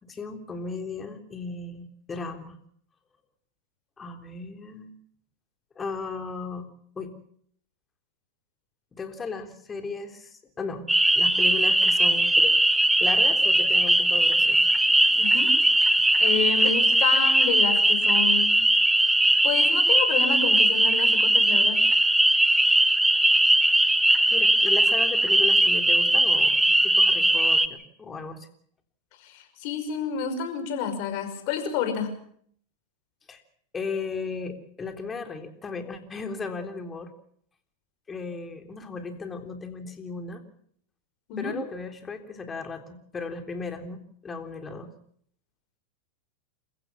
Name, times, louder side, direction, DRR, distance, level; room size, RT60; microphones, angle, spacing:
voice 1, 0.0-2.6 4.0-4.9 5.8-6.7 7.0-7.1 8.9-10.9 11.2-12.6 13.0-14.6 16.6-16.7 24.3-28.5 33.3-33.4 33.7-37.1 38.1-40.4 41.4-44.9, left 4 dB, 20° left, 7 dB, 3.6 m, -36 dB
sound 1, 10.9-27.7, right 1 dB, 5° right, 1.4 m, -20 dB
voice 2, 15.2-15.5 16.2-18.6 19.4-21.8 29.2-32.1 41.3-41.6, left 7 dB, 55° left, 7 dB, 5.7 m, -29 dB
28.5 x 15.5 x 7.2 m, 0.64 s
hypercardioid pair, 100°, 0 cm